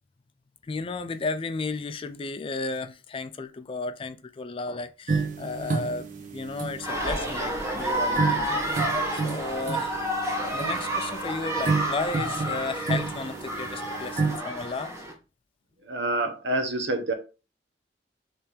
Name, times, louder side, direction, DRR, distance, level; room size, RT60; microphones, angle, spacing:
voice 1, 0.6-8.6 9.1-10.1 10.5-14.9, left 3 dB, 30° left, 0.4 m, -34 dB
sound 1, 5.1-14.4, right 4 dB, 45° right, 0.8 m, -31 dB
sound 2, 6.8-15.1, right 1 dB, 15° right, 1.1 m, -30 dB
voice 2, 15.8-17.1, right 2 dB, 85° right, 0.9 m, -27 dB
3.4 x 3.3 x 4.3 m
head